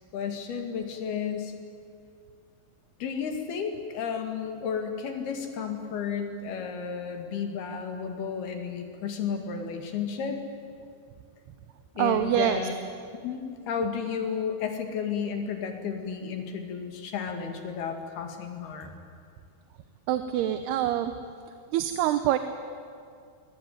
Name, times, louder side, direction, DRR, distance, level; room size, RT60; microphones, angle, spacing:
voice 1, 0.1-1.5 3.0-10.4 12.0-12.7 13.2-19.0, left 6 dB, 70° left, 5 dB, 4.1 m, -32 dB
voice 2, 12.0-12.6 20.1-21.1 21.7-22.4, right 12 dB, 80° right, 9 dB, 2.9 m, -25 dB
26.5 x 22.0 x 9.4 m, 2.3 s
omnidirectional pair, 4.7 m